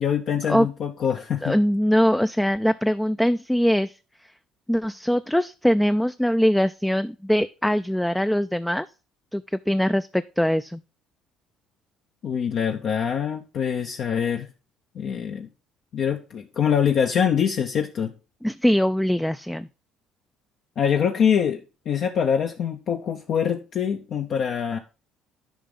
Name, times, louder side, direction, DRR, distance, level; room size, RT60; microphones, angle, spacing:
voice 1, 0.0-1.6 12.2-14.5 14.9-15.5 15.9-18.1 20.8-21.6 21.9-24.8, left 7 dB, 60° left, 4 dB, 0.7 m, -24 dB
voice 2, 1.4-3.9 4.7-8.9 9.3-10.8 18.4-19.7, equal, 5° left, 11 dB, 0.3 m, -22 dB
10.0 x 5.1 x 3.7 m, 0.33 s
supercardioid pair, 90°, 0 cm